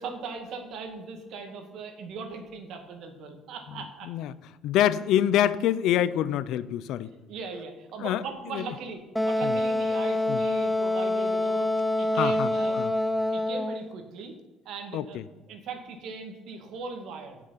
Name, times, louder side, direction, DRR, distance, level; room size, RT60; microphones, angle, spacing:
voice 1, 0.0-4.1 7.3-11.7 12.0-12.9 13.3-14.3 14.7-15.2 15.5-17.4, right 4 dB, 60° right, 5 dB, 2.0 m, -39 dB
voice 2, 3.7-4.3 4.6-7.1 8.0-8.7 9.4-9.6 10.3-10.4 12.1-12.9 14.9-15.2, left 11 dB, 65° left, 16 dB, 0.6 m, -26 dB
Wind instrument woodwind instrument, 9.2-13.8, left 1 dB, ahead, 0.5 m, -26 dB
16.5 x 6.2 x 5.8 m, 1.1 s
cardioid pair, 155°, 0 cm